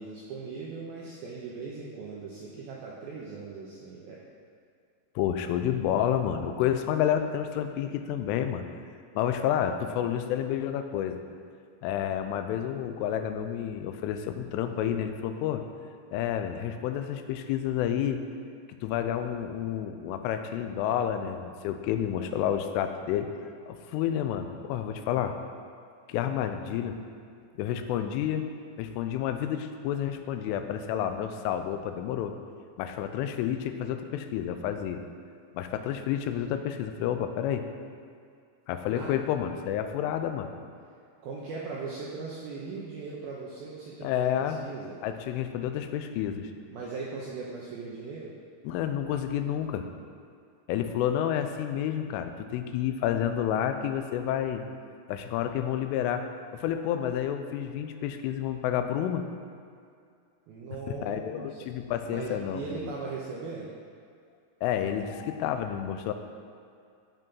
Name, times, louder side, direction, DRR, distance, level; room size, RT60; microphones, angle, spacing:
voice 1, 0.0-4.2 22.2-22.5 38.9-39.1 41.2-45.0 46.7-48.3 60.5-61.6 62.1-63.7, right 4 dB, 80° right, -4 dB, 2.2 m, -39 dB
voice 2, 5.2-8.6 9.2-11.2 11.8-15.6 16.1-18.2 18.8-23.3 23.7-25.4 26.1-27.0 27.6-28.4 28.8-32.3 32.8-35.0 35.5-37.6 38.7-40.5 44.0-44.6 45.0-46.5 48.6-49.9 50.7-54.6 55.1-59.2 60.9-62.9 64.6-66.1, left 10 dB, 85° left, 7 dB, 3.1 m, -30 dB
13.5 x 5.3 x 5.5 m, 2.3 s
omnidirectional pair, 5.6 m